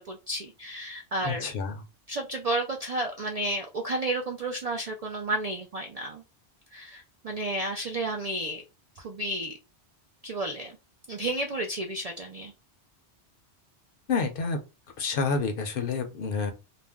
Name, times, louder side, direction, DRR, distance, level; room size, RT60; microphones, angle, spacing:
voice 1, 0.0-1.5 2.1-6.2 6.7-8.6 9.0-9.5 10.2-10.8 11.1-12.5, right 1 dB, 60° right, 0.4 m, -32 dB
voice 2, 1.2-1.8 14.1-14.6 15.0-16.5, left 4 dB, 60° left, 0.7 m, -28 dB
2.4 x 2.0 x 3.4 m
omnidirectional pair, 1.2 m